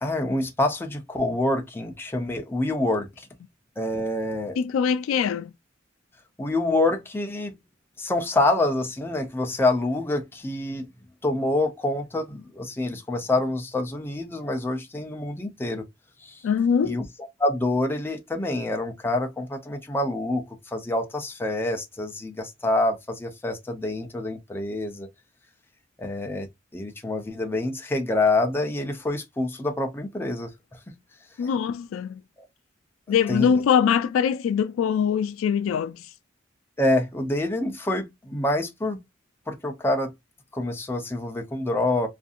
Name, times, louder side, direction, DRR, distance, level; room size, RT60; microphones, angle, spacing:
voice 1, 0.0-3.3 3.8-4.6 6.4-7.5 8.0-10.9 11.2-15.8 16.2-16.4 16.8-17.0 17.4-25.1 26.0-26.5 26.7-30.5 30.9-31.0 33.3-33.5 36.8-39.0 39.5-40.1 40.5-42.1, left 2 dB, 10° left, 0.5 m, -26 dB
voice 2, 4.6-5.5 16.4-17.0 31.4-32.2 33.1-36.1, left 7 dB, 80° left, 0.3 m, -23 dB
2.6 x 2.5 x 2.3 m
head